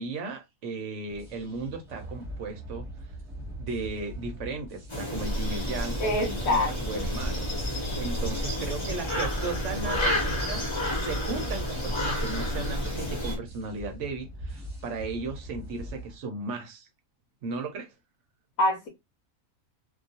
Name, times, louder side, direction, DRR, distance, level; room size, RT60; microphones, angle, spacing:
voice 1, 0.0-2.8 3.6-7.5 7.9-16.9 17.4-17.9, right 3 dB, 65° right, 0.8 m, -36 dB
sound 1, 1.1-16.2, right 1 dB, 25° right, 0.9 m, -42 dB
sound 2, 4.9-13.4, left 1 dB, 25° left, 0.9 m, -30 dB
voice 2, 6.0-7.0 18.6-18.9, left 1 dB, 75° left, 1.0 m, -26 dB
2.4 x 2.3 x 2.6 m
omnidirectional pair, 1.5 m